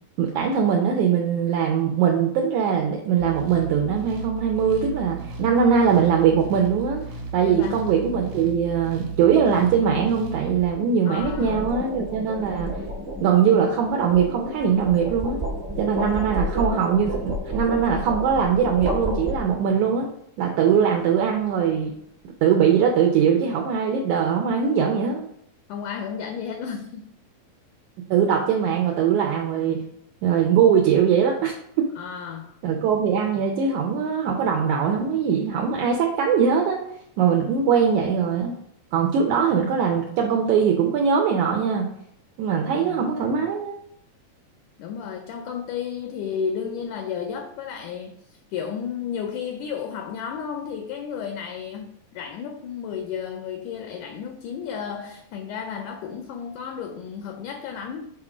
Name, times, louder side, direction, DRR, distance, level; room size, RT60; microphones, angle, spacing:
voice 1, 0.2-7.0 7.3-12.8 13.2-15.4 15.8-20.1 20.4-21.9 22.4-25.3 28.1-29.8 30.2-31.5 32.6-36.8 37.2-38.5 38.9-41.9 42.4-43.7, right 7 dB, 75° right, 1.8 m, -21 dB
sound 1, 3.2-10.7, right 5 dB, 60° right, 2.1 m, -35 dB
sound 2, 5.5-5.8 10.9-19.8, equal, 35° right, 1.0 m, -31 dB
voice 2, 7.4-7.9 11.1-11.7 25.7-27.1 32.0-32.6 42.6-43.0 44.8-48.2 48.5-58.1, left 7 dB, 80° left, 1.9 m, -33 dB
6.4 x 3.6 x 4.9 m
omnidirectional pair, 4.0 m